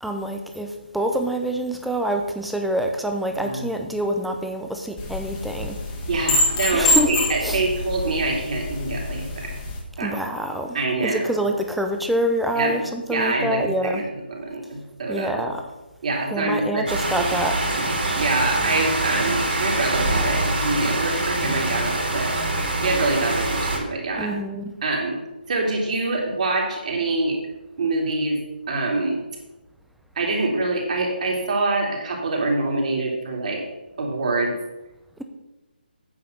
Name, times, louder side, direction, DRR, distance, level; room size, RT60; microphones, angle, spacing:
voice 1, 0.0-0.7 0.9-5.8 6.7-7.1 7.4-7.6 10.0-10.8 11.0-14.0 15.1-15.6 16.3-17.6 24.2-24.6, right 1 dB, ahead, 4 dB, 0.6 m, -26 dB
voice 2, 3.4-3.7 6.1-9.5 10.0-10.2 10.7-11.3 12.5-12.8 13.1-15.5 16.0-16.9 17.1-17.3 17.8-22.3 22.8-24.3 24.8-25.2 25.5-27.4 27.8-28.4 28.7-29.2 30.1-33.6 34.0-34.5, right 2 dB, 45° right, -1 dB, 3.1 m, -25 dB
sound 1, 5.0-9.8, left 2 dB, 20° left, 1.6 m, -25 dB
sound 2, 16.9-23.8, right 2 dB, 70° right, 3.5 m, -24 dB
9.3 x 5.6 x 6.8 m, 1.0 s
figure-of-eight pair, 160°, 6 cm